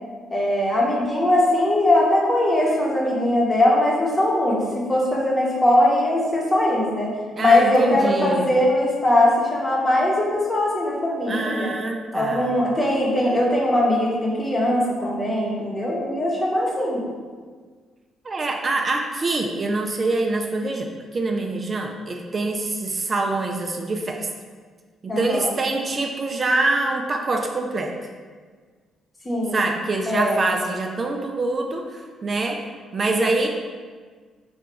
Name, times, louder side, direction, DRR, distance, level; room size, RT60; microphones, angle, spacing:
voice 1, 0.3-7.1 7.4-11.7 12.1-17.0 25.1-25.5 29.2-29.7 30.1-30.4, left 1 dB, 20° left, -3 dB, 0.9 m, -20 dB
voice 2, 7.4-8.5 11.3-12.5 18.2-24.3 25.0-27.9 29.5-32.6 32.9-33.5, right 2 dB, 35° right, 2 dB, 0.3 m, -25 dB
3.3 x 2.3 x 3.8 m, 1.5 s
cardioid pair, 90°, 0 cm